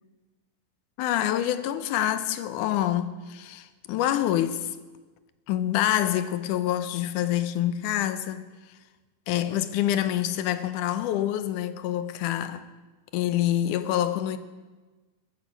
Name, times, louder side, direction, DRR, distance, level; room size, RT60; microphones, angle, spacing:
voice 1, 1.0-4.7 5.5-8.4 9.3-12.7 13.1-14.4, left 12 dB, 80° left, 2.2 m, -26 dB
16.5 x 13.5 x 5.4 m
omnidirectional pair, 3.6 m